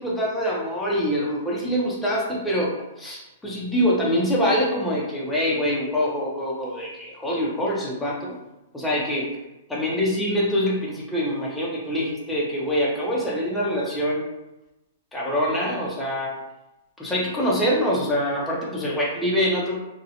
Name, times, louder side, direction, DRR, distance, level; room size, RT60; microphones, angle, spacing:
voice 1, 0.0-2.7 3.0-8.4 8.7-9.3 9.7-14.2 15.1-16.4 17.0-19.8, equal, 5° left, -5 dB, 0.5 m, -24 dB
2.5 x 2.1 x 2.7 m, 0.96 s
hypercardioid pair, 155°, 0 cm